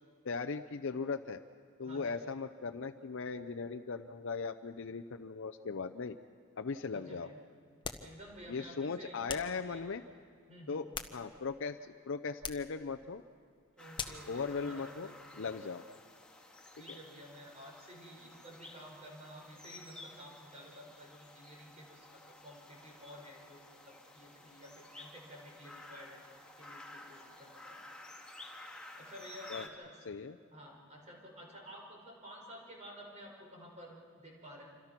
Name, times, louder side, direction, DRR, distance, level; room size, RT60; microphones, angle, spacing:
voice 1, 0.2-1.4 1.8-6.2 6.6-7.3 8.5-10.0 10.7-13.2 14.3-15.1 15.4-15.9 16.9-17.0 29.5-29.7 30.1-30.4, left 4 dB, 60° left, 6 dB, 0.6 m, -38 dB
voice 2, 1.8-2.3 6.9-7.4 8.0-9.8 10.5-10.8 13.8-15.5 16.7-27.8 28.9-30.0 30.5-34.6, equal, 30° right, -1 dB, 5.4 m, -52 dB
sound 1, 7.8-8.2 9.3-9.6 10.7-11.6 12.4-12.7 14.0-14.3, left 5 dB, 20° left, 0.9 m, -42 dB
sound 2, 13.8-29.7, left 2 dB, 5° left, 1.9 m, -53 dB
27.0 x 26.0 x 6.0 m, 2.1 s
head